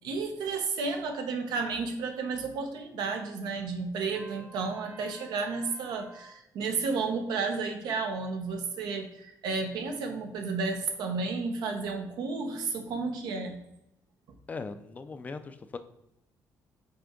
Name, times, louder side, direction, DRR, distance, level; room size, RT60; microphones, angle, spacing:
voice 1, 0.0-13.6, right 4 dB, 90° right, 5 dB, 1.0 m, -32 dB
Trumpet, 4.1-6.4, right 2 dB, 20° right, 0.7 m, -51 dB
voice 2, 14.5-15.8, left 4 dB, 20° left, 10 dB, 0.3 m, -39 dB
5.8 x 4.3 x 3.7 m, 0.85 s
cardioid pair, 170°, 7 cm